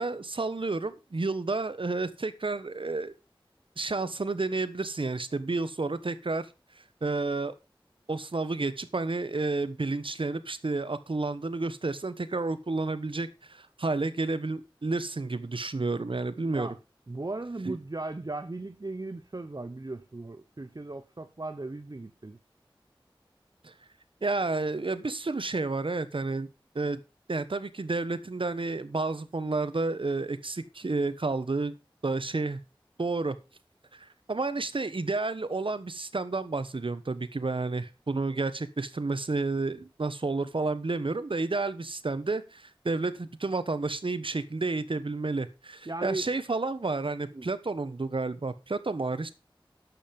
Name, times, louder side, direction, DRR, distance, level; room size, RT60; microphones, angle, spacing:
voice 1, 0.0-3.1 3.8-6.5 7.0-7.5 8.1-16.7 17.6-17.7 23.6-23.7 24.2-26.5 26.7-27.0 27.3-31.7 32.0-32.6 33.0-33.4 33.9-49.3, right 3 dB, 70° right, 1.2 m, -31 dB
voice 2, 17.1-22.4 45.9-46.3 47.3-47.5, right 2 dB, 45° right, 0.9 m, -37 dB
11.5 x 7.8 x 5.3 m
wide cardioid pair, 40°, 9 cm